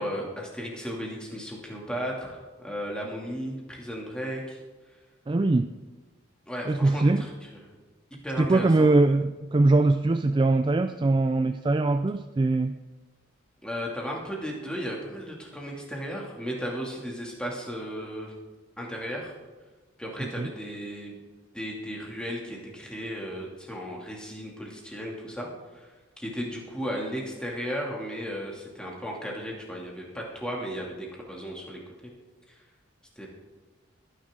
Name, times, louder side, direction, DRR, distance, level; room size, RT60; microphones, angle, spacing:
voice 1, 0.0-4.6 6.5-7.3 8.2-8.9 13.6-18.3 18.8-19.3 20.0-21.2 21.5-25.9 26.2-31.8 32.5-32.6 33.2-33.3, equal, 5° left, -2 dB, 2.5 m, -35 dB
voice 2, 5.3-5.7 6.7-7.3 8.4-12.8 20.2-20.5, right 2 dB, 25° right, 9 dB, 0.3 m, -22 dB
22.0 x 10.0 x 3.7 m, 1.3 s
head